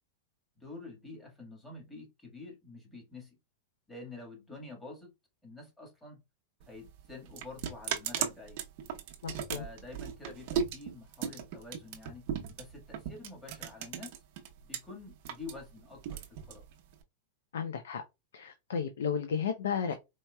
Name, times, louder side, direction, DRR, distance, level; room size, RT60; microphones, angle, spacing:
voice 1, 0.6-3.4 3.9-5.1 5.4-6.2 6.7-8.6 9.5-12.3 12.6-14.2 14.6-16.6, left 3 dB, 10° left, 1.6 m, -48 dB
sound 1, 6.6-14.8 15.1-17.0, right 8 dB, 55° right, 0.8 m, -37 dB
voice 2, 9.2-9.6 17.5-18.0 18.3-19.9, left 7 dB, 85° left, 0.6 m, -33 dB
4.4 x 2.8 x 2.2 m
hypercardioid pair, 130°, 0 cm